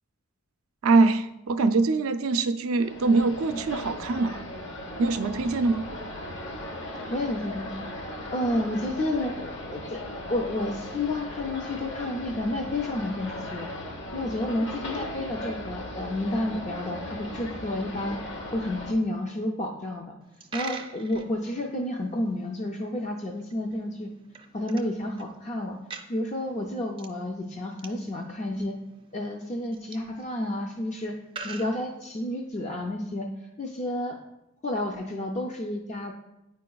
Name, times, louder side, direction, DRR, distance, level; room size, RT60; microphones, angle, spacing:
voice 1, 0.8-4.4 5.0-5.9, right 3 dB, 75° right, 8 dB, 0.4 m, -23 dB
sound 1, 2.8-18.9, left 1 dB, 55° left, 0.9 m, -37 dB
voice 2, 7.1-7.9 8.3-10.0 10.3-13.7 14.1-18.2 18.5-20.1 20.5-24.1 24.5-25.7 26.1-28.8 29.1-31.1 31.4-33.3 33.6-34.1 34.6-36.1, left 1 dB, 35° left, 1 dB, 0.4 m, -30 dB
Coin (dropping), 20.2-32.5, right 4 dB, 25° right, 0.4 m, -46 dB
9.2 x 4.7 x 2.3 m, 0.93 s
head